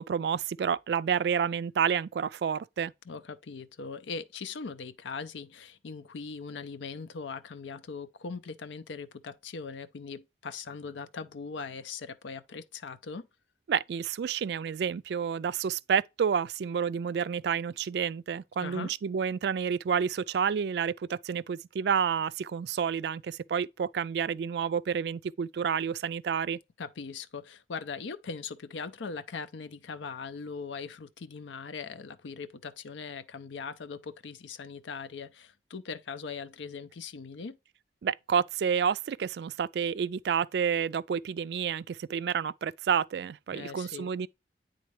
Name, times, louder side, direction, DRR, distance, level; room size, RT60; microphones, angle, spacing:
voice 1, 0.0-2.9 13.7-26.6 38.0-44.3, right 7 dB, 65° right, 0.3 m, -29 dB
voice 2, 3.1-13.3 18.6-18.9 26.8-37.6 43.5-44.1, left 5 dB, 90° left, 0.6 m, -40 dB
9.4 x 3.7 x 3.2 m
head